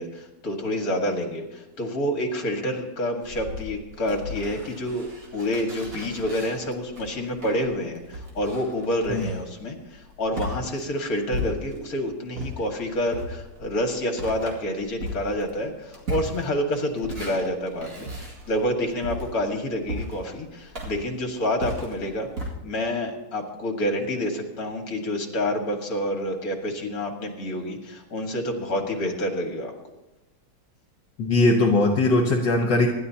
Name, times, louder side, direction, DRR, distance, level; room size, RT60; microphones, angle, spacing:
voice 1, 0.0-22.3 22.6-29.7, equal, 50° left, 3 dB, 2.3 m, -28 dB
sound 1, 3.2-12.0 12.3-22.5, left 1 dB, 45° right, 2.7 m, -36 dB
voice 2, 31.2-32.9, left 2 dB, 65° left, 2 dB, 1.8 m, -20 dB
26.0 x 11.5 x 2.9 m, 1.1 s
omnidirectional pair, 2.1 m